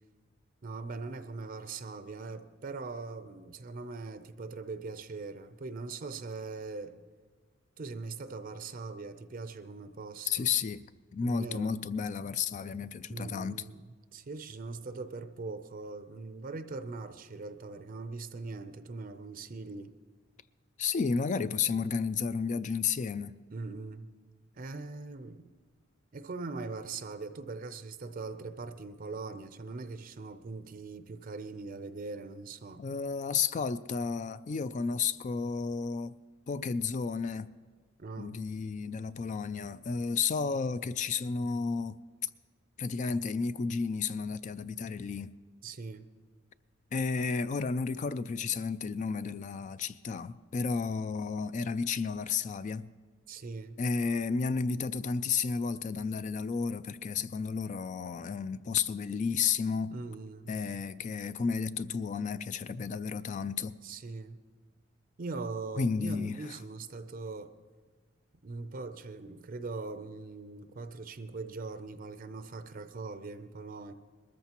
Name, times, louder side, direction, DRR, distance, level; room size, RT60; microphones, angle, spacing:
voice 1, 0.6-6.9 7.8-10.5 11.2-11.8 13.1-13.8 14.1-19.9 23.5-24.1 24.5-25.5 26.1-32.8 38.0-38.4 45.6-46.1 53.3-53.8 59.9-60.5 63.8-64.4 65.2-67.5 68.4-73.9, right 3 dB, 45° right, 0.5 m, -41 dB
voice 2, 10.3-10.9 11.1-13.6 20.8-23.3 32.8-36.1 36.5-37.5 38.2-42.0 42.8-45.3 46.9-52.9 53.8-60.0 60.5-63.8 65.8-66.3, left 5 dB, 40° left, 0.3 m, -32 dB
21.0 x 14.0 x 3.0 m
head